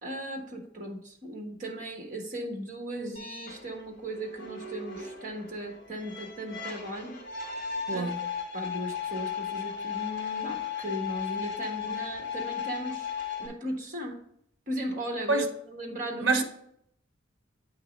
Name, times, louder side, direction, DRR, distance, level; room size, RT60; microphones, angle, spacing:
voice 1, 0.0-7.2 7.9-8.1 8.5-13.1 13.4-14.2 14.7-16.4, right 1 dB, 40° right, 2 dB, 1.4 m, -37 dB
sound 1, 3.1-13.5, left 7 dB, 45° left, 1.7 m, -36 dB
voice 2, 7.9-8.2 15.3-15.5 16.2-16.4, right 3 dB, 55° right, 6 dB, 1.0 m, -26 dB
8.5 x 3.0 x 5.2 m, 0.71 s
head